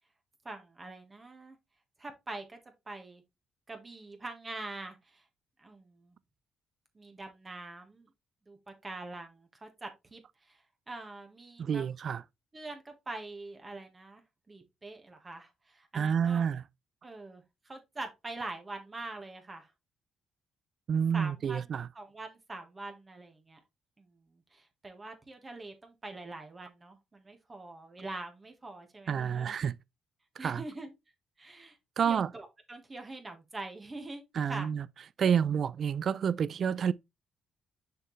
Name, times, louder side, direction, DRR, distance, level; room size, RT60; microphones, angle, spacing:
voice 1, 0.4-1.6 2.0-2.6 2.9-3.2 3.7-5.2 5.6-6.1 6.9-8.1 8.5-11.9 12.5-14.2 14.5-16.5 17.0-19.7 21.1-23.6 24.0-29.5 30.4-30.9 31.4-31.8 32.1-34.7, right 2 dB, 25° right, 1.4 m, -44 dB
voice 2, 11.6-12.2 15.9-16.6 20.9-21.9 29.1-29.7 30.4-30.6 32.0-32.3 34.3-34.9 35.2-36.9, right 7 dB, 55° right, 0.4 m, -29 dB
6.6 x 4.5 x 3.1 m
cardioid pair, 90°, 0 cm